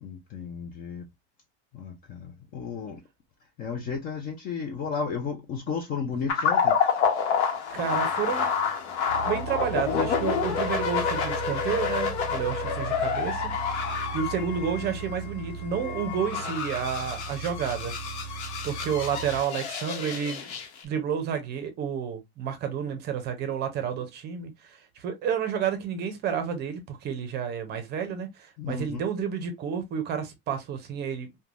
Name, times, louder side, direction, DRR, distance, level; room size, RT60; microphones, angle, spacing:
voice 1, 0.0-1.1 1.7-3.0 3.6-6.8 28.6-29.0, left 5 dB, 30° left, 0.4 m, -33 dB
sound 1, 6.3-20.8, left 6 dB, 85° left, 0.9 m, -28 dB
voice 2, 7.7-8.5 9.3-13.8 14.1-17.9 18.6-20.5 20.8-31.3, right 7 dB, 30° right, 0.6 m, -30 dB
sound 2, 9.1-19.4, right 5 dB, 5° left, 1.3 m, -38 dB
3.1 x 2.2 x 2.4 m
supercardioid pair, 155°, 33 cm